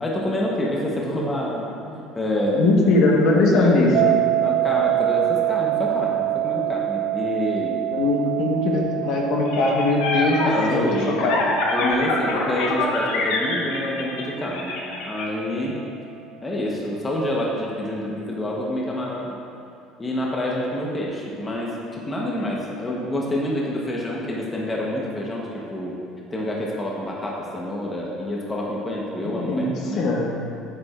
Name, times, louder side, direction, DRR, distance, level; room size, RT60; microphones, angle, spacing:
voice 1, 0.0-2.7 3.5-3.9 4.4-7.8 10.4-11.2 11.7-14.7 15.0-15.8 16.4-19.3 20.0-26.0 26.3-30.0, left 1 dB, 15° left, -3 dB, 1.0 m, -27 dB
voice 2, 2.5-4.2 7.9-11.4 29.2-30.3, left 2 dB, 55° left, -1 dB, 1.2 m, -20 dB
sound 1, 3.9-14.9, right 17 dB, 85° right, 0.3 m, -26 dB
sound 2, 9.5-15.2, left 3 dB, 80° left, 1.2 m, -25 dB
9.4 x 8.6 x 2.4 m, 2.5 s
cardioid pair, 145°, 0 cm